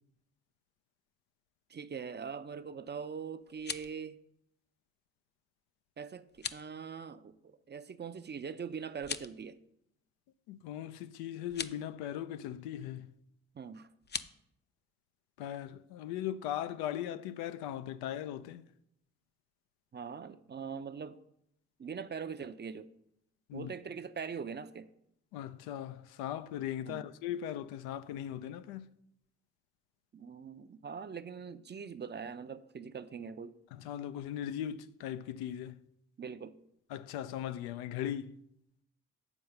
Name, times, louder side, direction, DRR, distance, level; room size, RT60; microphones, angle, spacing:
voice 1, 1.7-4.2 6.0-9.6 13.5-13.9 19.9-21.2 21.8-22.9 23.5-24.9 26.8-27.0 30.1-33.6 36.2-36.6, right 6 dB, 30° right, 0.5 m, -42 dB
sound 1, 3.4-4.0 6.3-6.7 8.9-9.4 11.4-11.8 14.0-14.3, left 6 dB, 30° left, 0.5 m, -40 dB
voice 2, 10.5-13.2 15.4-18.6 23.5-23.7 25.3-28.9 33.7-35.8 36.9-38.4, left 11 dB, 80° left, 0.5 m, -39 dB
7.2 x 4.6 x 6.5 m
hypercardioid pair, 45°, 38 cm